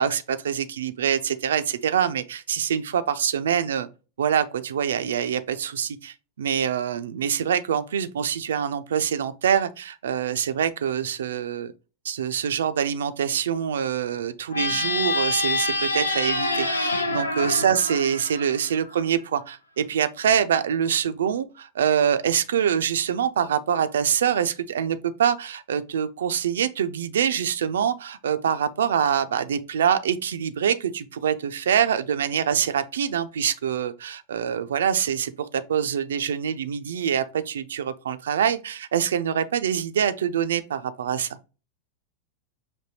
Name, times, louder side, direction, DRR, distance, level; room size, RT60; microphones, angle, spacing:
voice 1, 0.0-3.9 4.2-11.7 12.0-41.4, right 8 dB, 65° right, 0.3 m, -25 dB
sound 1, 14.5-19.0, left 2 dB, 80° left, 0.5 m, -26 dB
5.2 x 2.7 x 2.8 m
figure-of-eight pair, 90°, 0 cm